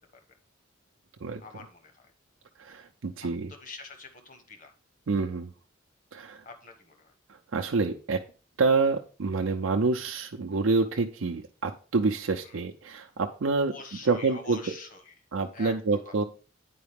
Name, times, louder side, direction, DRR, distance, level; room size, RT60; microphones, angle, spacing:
voice 1, 1.4-2.1 3.2-4.7 6.4-7.1 12.4-12.6 13.7-15.1 15.5-15.7, left 4 dB, 40° left, 5 dB, 1.1 m, -45 dB
voice 2, 2.6-3.5 5.1-5.5 6.1-6.4 7.3-8.2 8.6-13.7 14.0-14.6 15.3-16.2, right 4 dB, 85° right, 3 dB, 0.6 m, -27 dB
9.3 x 4.8 x 3.5 m, 0.37 s
head